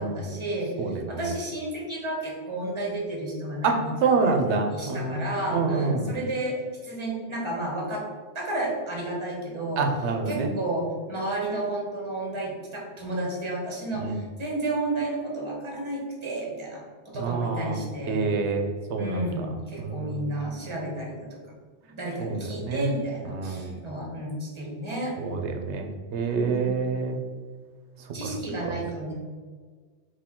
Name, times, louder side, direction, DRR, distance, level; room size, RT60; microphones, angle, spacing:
voice 1, 0.0-3.9 4.2-4.4 4.7-6.6 6.8-8.1 8.3-9.8 10.3-18.3 19.0-21.4 21.9-25.2 26.4-26.8 28.1-29.1, right 1 dB, 25° right, -2 dB, 1.0 m, -32 dB
voice 2, 0.8-1.3 3.6-6.1 9.8-10.5 14.0-14.2 17.1-17.8 18.1-19.3 19.8-20.3 22.2-22.9 23.3-23.8 25.2-27.2 28.2-28.3 28.6-28.8, right 4 dB, 80° right, 4 dB, 0.9 m, -27 dB
4.6 x 2.7 x 3.6 m, 1.5 s
omnidirectional pair, 1.1 m